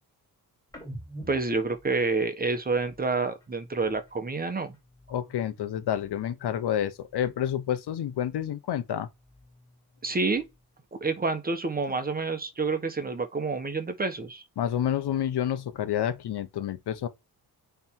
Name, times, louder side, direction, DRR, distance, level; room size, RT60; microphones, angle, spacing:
sound 1, 0.7-4.3 4.6-6.4 6.7-8.6 8.9-10.8, right 1 dB, 10° left, 5.7 m, -50 dB
voice 1, 1.3-4.8 10.0-10.4 10.9-14.4, right 3 dB, 20° right, 1.2 m, -28 dB
voice 2, 5.1-9.1 14.6-17.1, left 10 dB, 75° left, 1.1 m, -29 dB
9.4 x 3.5 x 4.6 m
wide cardioid pair, 175°, 40 cm